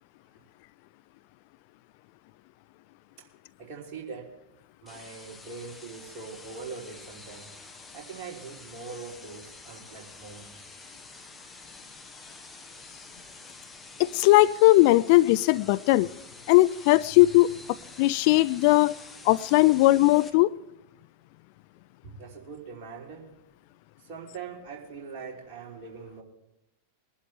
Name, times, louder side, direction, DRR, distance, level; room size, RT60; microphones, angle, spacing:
voice 1, 3.6-4.4 4.8-7.5 7.9-10.7 22.0-23.4 24.0-26.2, right 5 dB, 40° right, 3.5 m, -42 dB
sound 1, 4.9-20.3, left 3 dB, 10° left, 1.5 m, -48 dB
voice 2, 14.0-16.1 16.5-17.5 18.0-19.0 19.2-20.5, left 18 dB, 45° left, 0.4 m, -19 dB
22.0 x 11.5 x 3.5 m
figure-of-eight pair, 90°, 0 cm